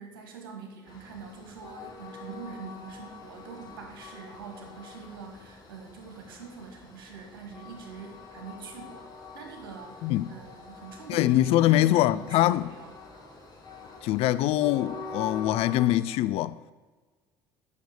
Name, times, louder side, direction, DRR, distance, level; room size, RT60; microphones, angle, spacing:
voice 1, 0.0-13.0, right 5 dB, 80° right, 1.9 m, -44 dB
Train, 0.9-15.9, left 4 dB, 35° left, 2.7 m, -45 dB
voice 2, 11.1-12.7 14.0-16.6, left 14 dB, 60° left, 0.4 m, -23 dB
8.3 x 6.6 x 6.7 m
hypercardioid pair, 60°, 12 cm